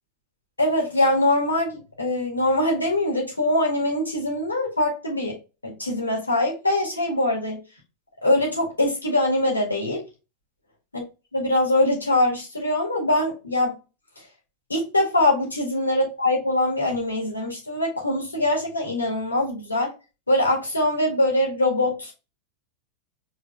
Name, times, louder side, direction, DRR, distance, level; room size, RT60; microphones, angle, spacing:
voice 1, 0.6-5.3 5.6-7.6 8.2-10.0 11.3-13.7 14.7-19.9 20.3-22.1, left 1 dB, 80° left, -1 dB, 1.9 m, -23 dB
4.8 x 3.5 x 2.4 m, 0.29 s
figure-of-eight pair, 90°, 0 cm